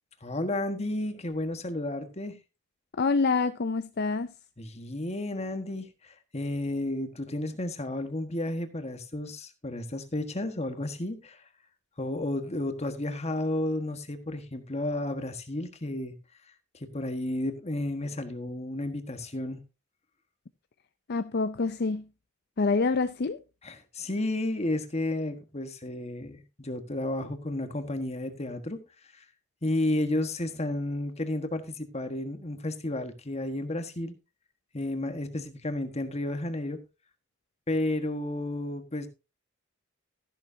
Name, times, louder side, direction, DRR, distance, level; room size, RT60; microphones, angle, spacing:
voice 1, 0.2-2.4 4.6-11.4 12.0-16.1 16.9-19.6 23.6-28.8 29.1-29.2 29.6-34.1 34.7-36.8 37.7-39.1, left 1 dB, 30° left, 1.5 m, -32 dB
voice 2, 3.0-4.3 21.1-22.1 22.6-23.4, left 4 dB, 50° left, 0.5 m, -26 dB
13.5 x 11.5 x 2.7 m
head